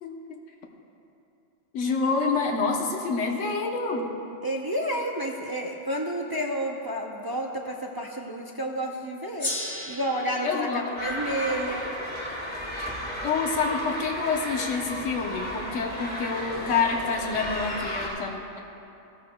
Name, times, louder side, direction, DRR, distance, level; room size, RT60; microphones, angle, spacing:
voice 1, 0.0-0.4 1.7-4.1 10.4-10.8 12.7-12.9 13.2-18.6, left 4 dB, 70° left, 1 dB, 1.3 m, -27 dB
voice 2, 4.4-9.5 9.9-11.9, right 1 dB, 25° right, 0 dB, 0.5 m, -30 dB
Gong, 9.4-14.1, left 1 dB, 35° left, 1.4 m, -38 dB
sound 1, 11.0-18.1, equal, 5° left, 1.9 m, -34 dB
16.0 x 14.0 x 2.2 m, 2.8 s
omnidirectional pair, 1.3 m